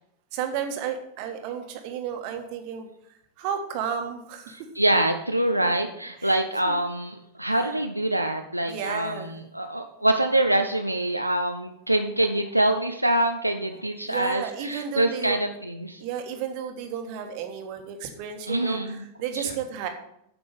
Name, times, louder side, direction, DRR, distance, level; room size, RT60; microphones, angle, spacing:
voice 1, 0.3-2.9 3.4-4.6 6.2-6.3 6.7-6.8 7.5-7.6 8.6-9.3 14.1-15.4 16.0-19.9, right 8 dB, 45° right, 6 dB, 1.5 m, -32 dB
voice 2, 4.5-16.0 18.5-19.0 19.3-19.5, right 1 dB, 90° right, 5 dB, 0.5 m, -25 dB
8.8 x 6.9 x 5.3 m, 0.75 s
figure-of-eight pair, 90°, 0 cm